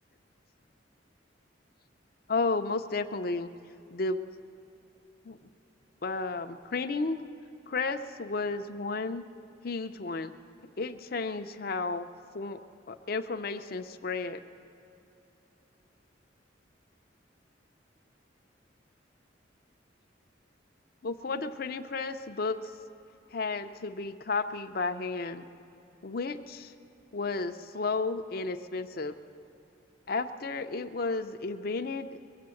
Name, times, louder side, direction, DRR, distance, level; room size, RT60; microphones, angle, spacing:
voice 1, 2.3-3.5 3.9-4.2 5.3-5.4 6.0-7.2 7.7-9.2 9.6-10.3 10.8-12.1 12.3-12.6 12.9-14.4 21.0-22.6 23.3-25.4 26.0-26.7 27.1-29.2 30.1-32.1, left 3 dB, 50° left, 8 dB, 0.5 m, -32 dB
22.5 x 7.8 x 7.7 m, 2.9 s
head